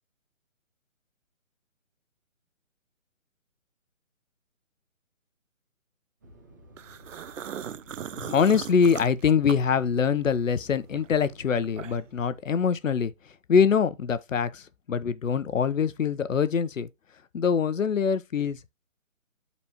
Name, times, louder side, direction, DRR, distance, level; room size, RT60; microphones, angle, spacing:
Fixed-wing aircraft airplane, 6.2-12.9, right 1 dB, 15° right, 0.6 m, -53 dB
sound 1, 6.8-10.3 10.7-12.2, right 8 dB, 65° right, 0.5 m, -39 dB
voice 1, 8.1-13.1 13.5-16.9 17.3-18.7, left 6 dB, 70° left, 0.9 m, -24 dB
11.5 x 4.2 x 2.9 m
figure-of-eight pair, 150°, 41 cm